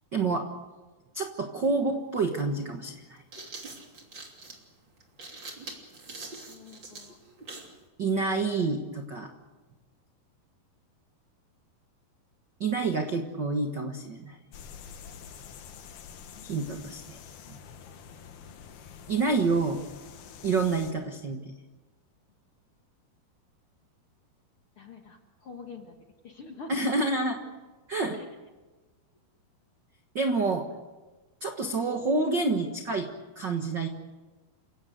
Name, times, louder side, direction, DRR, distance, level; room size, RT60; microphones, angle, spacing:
voice 1, 0.1-0.5 1.1-3.2 8.0-9.3 12.6-14.4 16.4-17.2 19.1-19.8 20.4-21.5 26.7-27.4 27.9-28.2 30.1-30.7 31.4-33.1 33.3-33.9, right 3 dB, 65° right, 4 dB, 1.0 m, -28 dB
sound 1, 1.9-2.0 3.0-7.8, right 3 dB, 30° right, 3.3 m, -44 dB
voice 2, 6.5-7.2 16.4-16.5 24.8-25.9 26.2-26.7 28.1-28.3, left 4 dB, 50° left, 3 dB, 1.8 m, -46 dB
sound 2, 14.5-20.9, left 7 dB, 75° left, 3.5 m, -47 dB
30.0 x 17.0 x 8.0 m, 1.2 s
omnidirectional pair, 4.5 m